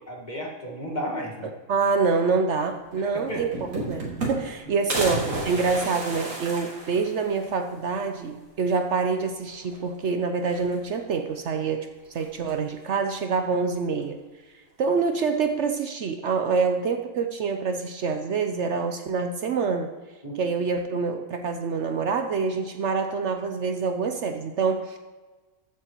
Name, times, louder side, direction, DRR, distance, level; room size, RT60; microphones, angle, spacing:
voice 1, 0.1-1.5 3.0-3.4 4.9-5.0 20.2-20.4, equal, 35° left, -1 dB, 1.9 m, -33 dB
voice 2, 1.7-11.9 12.1-14.2 14.8-19.9 20.4-25.0, right 5 dB, 60° right, 6 dB, 0.9 m, -26 dB
sound 1, 2.9-3.0 3.3-4.6 4.9-7.5 7.9-8.0 8.3-8.4 9.5-10.0 10.4-11.1 12.1-12.7, right 2 dB, 90° right, 2.6 m, -32 dB
14.5 x 8.2 x 3.0 m, 1.3 s
omnidirectional pair, 1.4 m